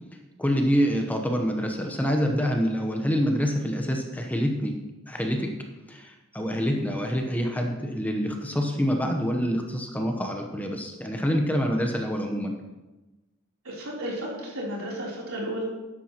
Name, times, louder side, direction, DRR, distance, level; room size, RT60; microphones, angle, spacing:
voice 1, 0.4-4.7 5.1-5.5 5.9-12.5, equal, 5° left, 2 dB, 0.9 m, -26 dB
voice 2, 13.6-15.6, equal, 90° right, -4 dB, 3.6 m, -33 dB
12.5 x 10.0 x 3.0 m, 1.1 s
head